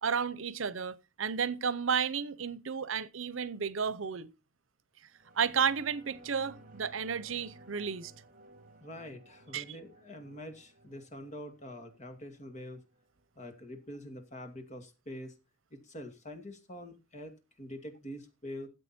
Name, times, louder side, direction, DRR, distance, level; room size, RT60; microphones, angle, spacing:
voice 1, 0.0-4.3 5.3-8.1 9.5-9.6, right 6 dB, 80° right, 0.7 m, -32 dB
sound 1, 5.1-14.1 14.5-14.6, right 1 dB, 45° right, 2.4 m, -58 dB
voice 2, 8.8-12.8 13.4-15.3 15.7-18.7, left 1 dB, 35° left, 2.2 m, -45 dB
14.0 x 8.0 x 4.3 m
head